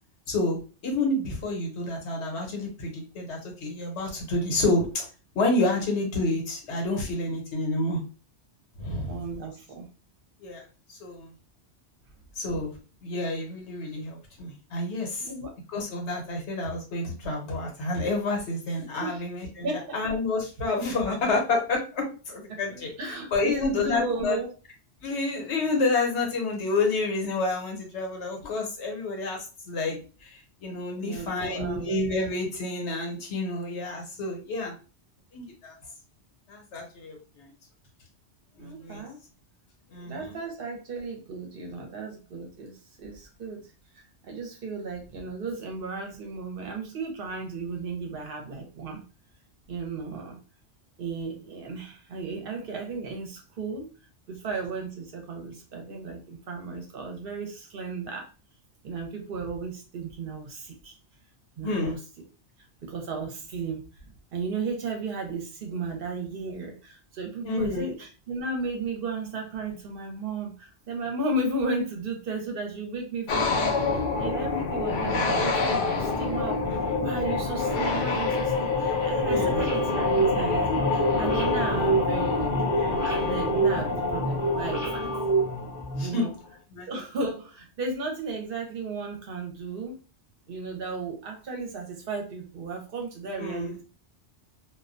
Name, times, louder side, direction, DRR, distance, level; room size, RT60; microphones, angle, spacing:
voice 1, 0.3-0.6 0.8-5.1 5.3-8.0 8.8-9.2 10.4-10.6 10.9-11.3 12.4-12.7 13.0-15.3 15.7-22.9 23.3-24.4 25.0-29.4 29.7-34.7 35.3-35.7 36.5-37.5 38.6-39.0 39.9-40.3 61.6-61.9 67.4-67.9 79.3-79.6 86.0-86.3 86.7-86.9 93.4-93.8, left 2 dB, 75° left, 1 dB, 1.0 m, -29 dB
voice 2, 9.1-9.9 15.2-15.5 19.0-19.2 19.6-20.1 22.7-24.5 31.0-31.9 38.6-39.2 40.0-43.6 44.2-49.0 49.7-50.4 51.0-53.9 54.3-58.3 58.8-61.0 61.6-62.0 62.8-63.8 64.3-82.5 83.0-85.1 86.0-86.3 86.9-90.0 90.5-93.8, right 3 dB, 55° right, 2 dB, 0.8 m, -34 dB
sound 1, 73.3-86.3, left 3 dB, 60° left, 0.5 m, -27 dB
sound 2, 79.2-86.0, right 3 dB, 10° left, 0.8 m, -28 dB
2.3 x 2.1 x 2.5 m, 0.35 s
omnidirectional pair, 1.2 m